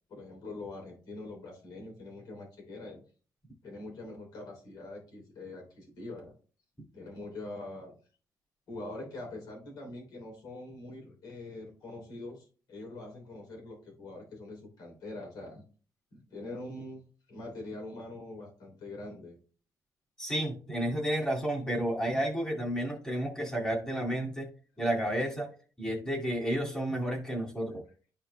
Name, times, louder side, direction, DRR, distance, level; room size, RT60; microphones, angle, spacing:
voice 1, 0.1-3.0 3.6-6.3 6.9-7.9 8.7-15.6 16.1-19.4, left 2 dB, 80° left, 1 dB, 3.5 m, -44 dB
voice 2, 20.2-24.5 24.8-25.5 25.8-27.8, right 1 dB, 10° left, -2 dB, 2.4 m, -31 dB
12.5 x 4.6 x 2.3 m, 0.40 s
cardioid pair, 160°, 7 cm